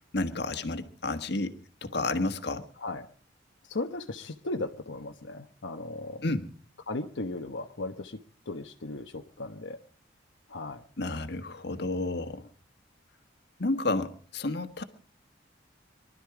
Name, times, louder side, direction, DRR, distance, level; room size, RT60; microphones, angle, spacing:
voice 1, 0.1-2.6 6.2-6.5 11.0-12.5 13.6-14.8, left 2 dB, 60° left, 9 dB, 1.5 m, -31 dB
voice 2, 3.7-6.3 6.9-9.8 10.5-10.8, left 2 dB, 85° left, 4 dB, 1.1 m, -36 dB
23.5 x 12.5 x 4.9 m, 0.43 s
head